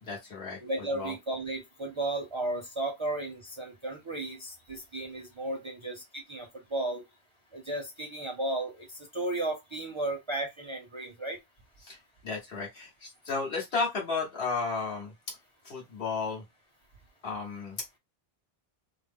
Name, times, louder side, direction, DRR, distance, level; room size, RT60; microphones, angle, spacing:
voice 1, 0.0-0.6 0.9-1.1 11.8-12.0 12.2-15.1 15.6-16.4 17.2-17.8, left 4 dB, 70° left, 1.6 m, -33 dB
voice 2, 0.6-7.0 7.5-11.4, right 2 dB, 35° right, 0.6 m, -34 dB
3.0 x 2.1 x 3.5 m
omnidirectional pair, 1.0 m